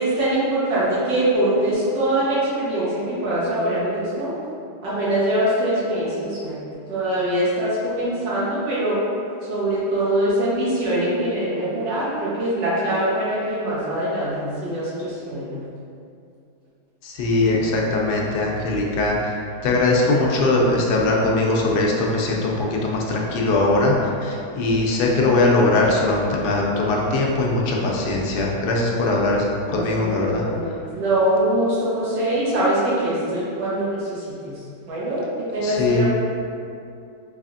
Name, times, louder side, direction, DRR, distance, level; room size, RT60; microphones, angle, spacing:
voice 1, 0.0-4.4 4.8-9.0 9.4-15.6 29.7-36.0, right 1 dB, 80° right, -9 dB, 1.8 m, -23 dB
voice 2, 17.0-19.3 19.6-23.9 24.2-29.5 29.7-30.4 35.6-36.0, left 2 dB, 70° left, -2 dB, 1.1 m, -20 dB
4.1 x 3.2 x 2.5 m, 2.5 s
omnidirectional pair, 1.9 m